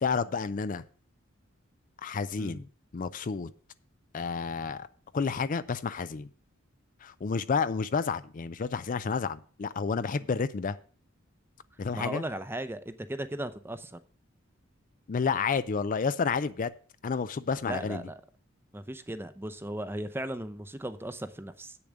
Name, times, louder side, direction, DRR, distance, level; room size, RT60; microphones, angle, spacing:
voice 1, 0.0-0.8 2.0-2.7 2.9-3.5 4.1-4.9 5.1-6.3 7.0-10.8 11.8-12.2 15.1-16.7 17.0-18.0, left 5 dB, 40° left, 0.4 m, -30 dB
voice 2, 11.9-14.0 17.7-18.2 18.7-21.8, right 1 dB, 10° right, 0.7 m, -37 dB
8.6 x 7.0 x 6.4 m
head